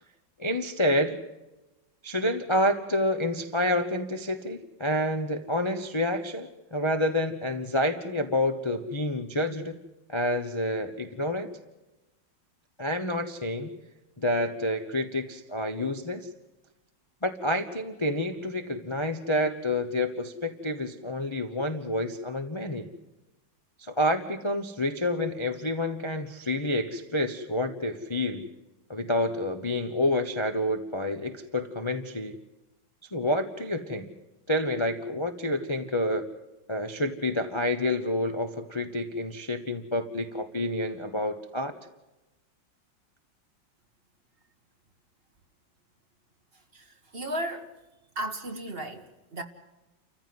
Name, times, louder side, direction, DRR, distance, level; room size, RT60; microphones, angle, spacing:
voice 1, 0.4-1.2 2.0-9.7 10.1-11.5 12.8-13.7 14.2-16.3 17.2-22.9 23.8-28.5 28.9-32.3 33.1-34.1 34.5-36.2 36.7-41.7, left 1 dB, 20° left, 0.9 m, -28 dB
voice 2, 47.1-47.7 48.1-49.4, right 1 dB, 35° right, 1.7 m, -34 dB
29.5 x 15.0 x 7.8 m
omnidirectional pair, 2.0 m